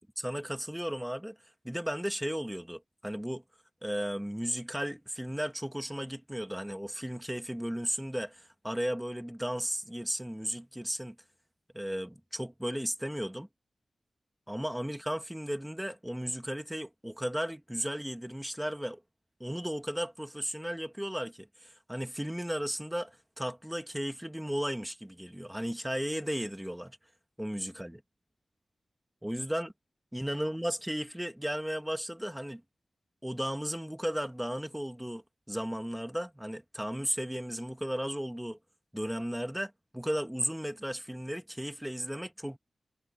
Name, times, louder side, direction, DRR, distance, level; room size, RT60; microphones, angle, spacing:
voice 1, 0.2-1.4 1.6-3.4 3.8-11.2 11.7-13.5 14.5-19.0 19.4-27.0 27.4-28.0 29.2-29.7 30.1-32.6 33.2-38.6 38.9-42.6, equal, 5° right, 1.9 m, -35 dB
wide cardioid pair, 120°, 0 cm